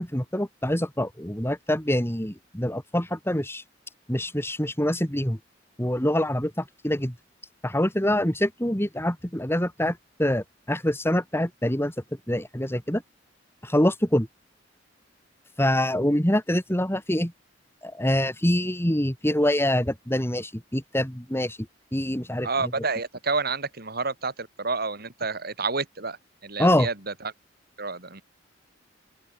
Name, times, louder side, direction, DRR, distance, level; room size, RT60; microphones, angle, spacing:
voice 1, 0.0-3.6 4.1-5.4 5.8-7.1 7.6-11.9 12.3-13.0 13.6-14.3 15.6-17.3 17.8-21.6 21.9-22.5 26.6-26.9, left 1 dB, 15° left, 5.1 m, -25 dB
voice 2, 22.4-26.2 26.4-27.3 27.8-28.2, right 4 dB, 55° right, 5.8 m, -29 dB
open air
head